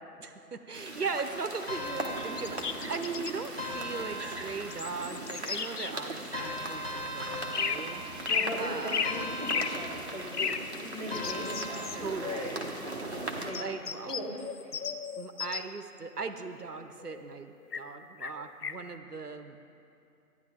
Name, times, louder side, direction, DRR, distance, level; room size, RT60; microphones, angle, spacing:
voice 1, 0.2-8.3 8.6-9.1 11.9-12.7 13.1-13.3 13.6-14.2 15.2-19.6, right 4 dB, 75° right, 8 dB, 0.8 m, -38 dB
sound 1, 0.7-13.5, right 2 dB, 45° right, 1.0 m, -40 dB
sound 2, 1.7-3.0 3.6-4.9 6.3-8.5 9.0-10.3 11.1-12.4, left 1 dB, 40° left, 1.4 m, -39 dB
sound 3, 2.2-3.4 4.7-6.0 7.5-7.9 8.3-9.8 10.3-10.6 11.1-12.5 13.5-15.7 16.2-17.9 18.2-18.8, left 6 dB, 80° left, 0.7 m, -34 dB
voice 2, 8.3-10.5 10.8-12.5 13.4-13.6 14.0-14.8, equal, 25° left, -8 dB, 1.7 m, -39 dB
14.0 x 9.7 x 3.7 m, 2.6 s
figure-of-eight pair, 175°, 46 cm